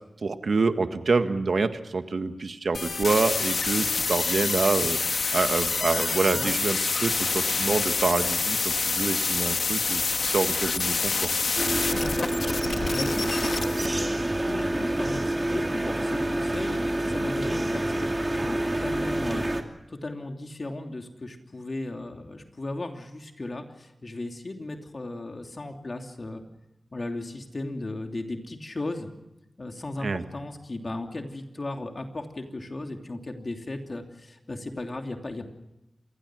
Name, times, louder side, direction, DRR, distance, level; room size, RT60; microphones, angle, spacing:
voice 1, 0.2-11.3 30.0-30.2, right 4 dB, 75° right, 8 dB, 1.6 m, -27 dB
sound 1, 2.7-13.9, left 4 dB, 80° left, 1.4 m, -27 dB
sound 2, 11.6-19.6, right 1 dB, 30° right, 2.7 m, -27 dB
voice 2, 11.9-12.3 12.7-19.5 19.9-26.4 26.9-29.1 29.6-35.5, left 2 dB, 50° left, 4 dB, 3.0 m, -36 dB
27.0 x 20.0 x 6.3 m, 0.92 s
wide cardioid pair, 60°, 0 cm